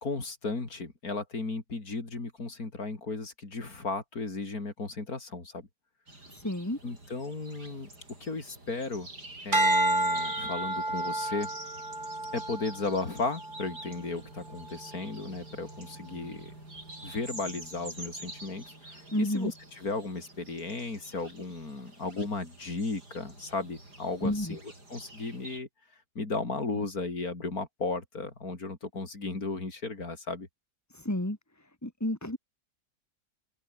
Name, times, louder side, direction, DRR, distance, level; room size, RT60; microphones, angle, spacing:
voice 1, 0.0-5.7 6.8-7.9 8.2-9.1 9.4-11.5 12.3-16.5 17.0-25.7 26.2-30.5, left 3 dB, 65° left, 4.4 m, -35 dB
sound 1, 6.1-25.6, right 2 dB, 90° right, 8.9 m, -47 dB
voice 2, 6.3-6.8 19.1-19.5 24.2-24.6 30.9-31.4 31.8-32.4, left 1 dB, 10° left, 3.3 m, -30 dB
sound 2, 9.5-14.0 14.5-14.9, right 2 dB, 30° right, 3.9 m, -30 dB
omnidirectional pair, 1.7 m